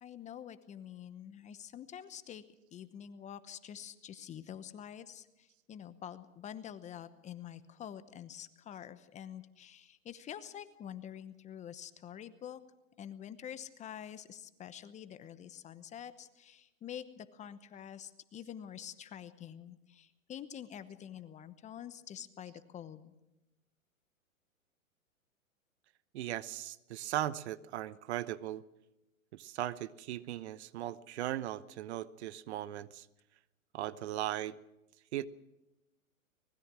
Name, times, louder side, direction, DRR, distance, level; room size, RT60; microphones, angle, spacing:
voice 1, 0.0-2.4 2.7-12.6 13.0-23.1, left 9 dB, 15° left, 13 dB, 1.0 m, -47 dB
voice 2, 26.1-28.6 29.3-33.1 33.7-34.6 35.1-35.3, right 13 dB, 50° right, 16 dB, 1.0 m, -38 dB
24.5 x 20.0 x 6.2 m, 0.93 s
hypercardioid pair, 130°, 41 cm